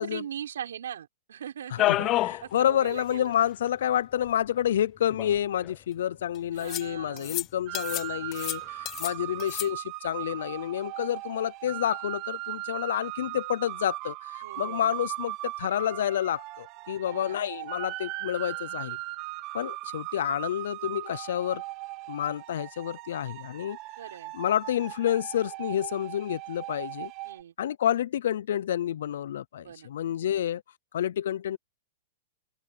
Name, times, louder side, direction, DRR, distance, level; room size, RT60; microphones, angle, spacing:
voice 1, 0.0-2.1 2.4-3.3 6.5-7.4 14.4-14.9 17.1-17.4 24.0-24.3 27.2-27.5 29.6-29.9, right 9 dB, 90° right, 5.5 m, -40 dB
voice 2, 1.7-19.0 19.5-21.6 22.1-23.8 24.3-27.1 27.6-30.6 30.9-31.6, left 10 dB, 70° left, 0.5 m, -29 dB
sound 1, 1.8-2.4 2.8-2.9 3.1-3.2 4.3-4.4 5.1-5.7 6.7-6.9 7.2-7.4 7.7-8.1 8.3-9.1 9.4-9.7, left 15 dB, 25° left, 0.7 m, -29 dB
sound 2, 7.7-27.4, right 19 dB, 30° right, 1.6 m, -38 dB
supercardioid pair, 165°, 0 cm